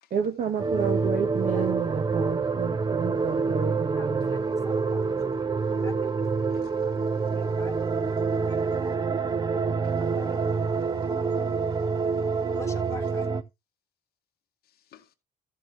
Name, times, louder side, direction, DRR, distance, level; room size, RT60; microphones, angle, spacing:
voice 1, 0.1-4.3, right 6 dB, 50° right, 1.2 m, -30 dB
sound 1, 0.6-13.4, right 4 dB, 25° right, 0.6 m, -27 dB
voice 2, 4.0-6.1 6.4-8.6 10.0-10.5 12.6-13.3, left 4 dB, 15° left, 1.4 m, -47 dB
voice 3, 6.5-7.0 9.8-11.2 12.0-12.1 12.4-12.6 14.7-15.1, left 11 dB, 65° left, 0.9 m, -57 dB
14.0 x 7.0 x 2.8 m
cardioid pair, 110°, 17 cm